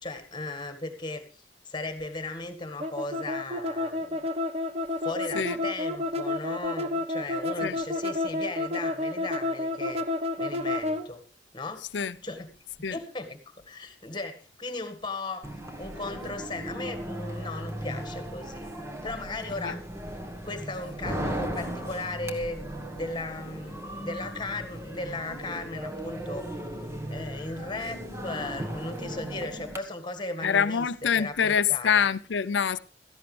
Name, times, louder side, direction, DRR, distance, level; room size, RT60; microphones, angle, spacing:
voice 1, 0.0-4.3 5.0-10.1 10.4-11.2 11.5-11.9 12.2-12.5 12.8-13.4 13.7-18.7 19.0-19.8 20.4-22.6 22.9-26.5 27.1-30.9 31.2-32.1, left 2 dB, 25° left, 1.7 m, -37 dB
sound 1, 2.8-11.0, left 2 dB, 35° right, 1.1 m, -30 dB
sound 2, 15.4-29.8, right 1 dB, 15° right, 1.3 m, -37 dB
voice 2, 30.4-32.8, left 7 dB, 80° left, 0.6 m, -25 dB
16.5 x 14.0 x 3.3 m
head